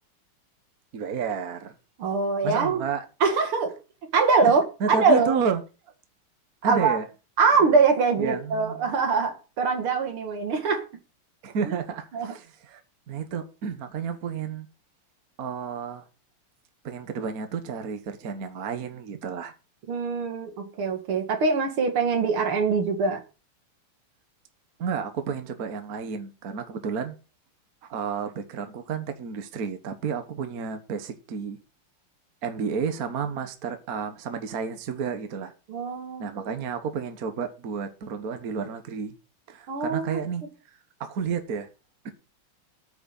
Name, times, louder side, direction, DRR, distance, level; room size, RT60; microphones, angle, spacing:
voice 1, 0.9-1.7 2.4-3.1 4.4-4.5 4.8-5.6 6.6-7.0 8.2-8.8 11.4-12.8 13.1-14.7 15.4-16.0 16.8-19.5 24.8-27.1 27.9-31.6 32.4-35.5 36.2-39.2 39.5-40.4 41.0-41.7 42.0-42.1, right 6 dB, 45° right, 1.5 m, -31 dB
voice 2, 2.0-2.8 3.2-3.7 4.1-5.3 6.6-7.0 7.4-10.8 12.1-12.3 19.9-23.2 35.7-36.6 39.7-40.2, right 4 dB, 75° right, 2.8 m, -23 dB
9.3 x 6.2 x 7.4 m
omnidirectional pair, 2.4 m